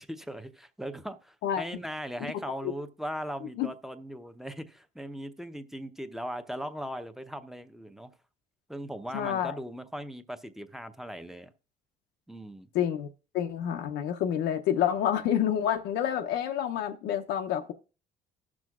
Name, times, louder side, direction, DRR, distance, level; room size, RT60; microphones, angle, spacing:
voice 1, 0.0-8.1 8.7-11.5 12.3-12.7, equal, ahead, 0.7 m, -39 dB
voice 2, 9.1-9.6 12.7-13.1 13.3-17.7, left 10 dB, 80° left, 0.6 m, -28 dB
17.0 x 6.2 x 2.4 m
cardioid pair, 110°, 17 cm